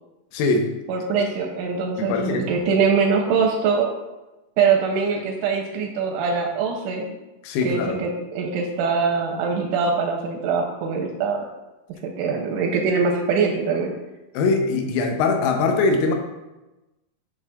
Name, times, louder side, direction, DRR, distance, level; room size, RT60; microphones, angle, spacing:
voice 1, 0.3-0.7 2.0-2.4 7.4-8.0 14.4-16.1, left 3 dB, 90° left, 4 dB, 3.6 m, -21 dB
voice 2, 0.9-3.9 4.6-7.2 7.6-11.5 12.0-13.9, right 5 dB, 85° right, 1 dB, 2.8 m, -23 dB
10.0 x 6.2 x 2.4 m, 1.0 s
omnidirectional pair, 6.0 m